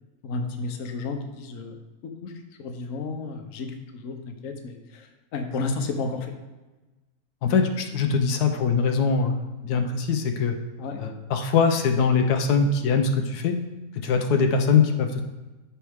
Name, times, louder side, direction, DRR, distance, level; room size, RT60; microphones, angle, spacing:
voice 1, 0.2-1.8 2.0-2.3 2.6-6.3 10.8-11.0, left 3 dB, 60° left, 5 dB, 1.2 m, -32 dB
voice 2, 7.4-10.6 11.0-13.5 13.9-15.2, left 5 dB, 90° left, 5 dB, 1.3 m, -22 dB
13.0 x 4.5 x 3.5 m, 1.2 s
omnidirectional pair, 1.6 m